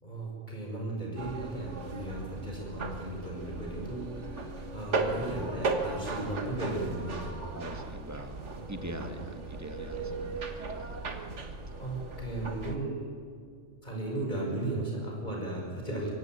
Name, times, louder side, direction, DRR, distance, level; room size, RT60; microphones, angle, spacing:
voice 1, 0.0-7.5 8.6-9.1 9.9-10.4 11.8-13.1 13.8-16.1, right 2 dB, 40° left, -2 dB, 6.1 m, -36 dB
sound 1, 1.2-12.8, right 3 dB, 75° right, 1.9 m, -37 dB
voice 2, 7.5-11.4 11.7-12.0, right 1 dB, 15° right, 5 dB, 1.8 m, -44 dB
24.5 x 17.0 x 9.1 m, 2.3 s
omnidirectional pair, 1.2 m